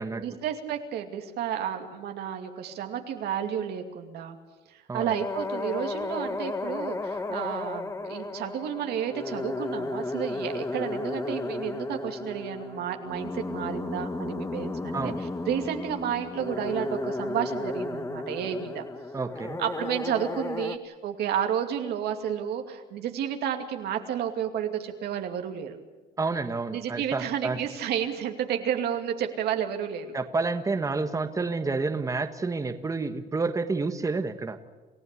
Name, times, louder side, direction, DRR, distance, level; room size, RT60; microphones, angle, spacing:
voice 1, 0.1-4.4 4.7-18.8 19.6-25.8 26.7-30.1, right 9 dB, 75° right, 5 dB, 2.6 m, -31 dB
sound 1, 5.0-20.8, left 2 dB, 15° left, 1.5 m, -34 dB
voice 2, 19.1-19.6 26.2-27.6 30.1-34.6, right 3 dB, 20° right, 8 dB, 1.5 m, -29 dB
28.0 x 15.0 x 8.5 m, 1.3 s
cardioid pair, 110°, 17 cm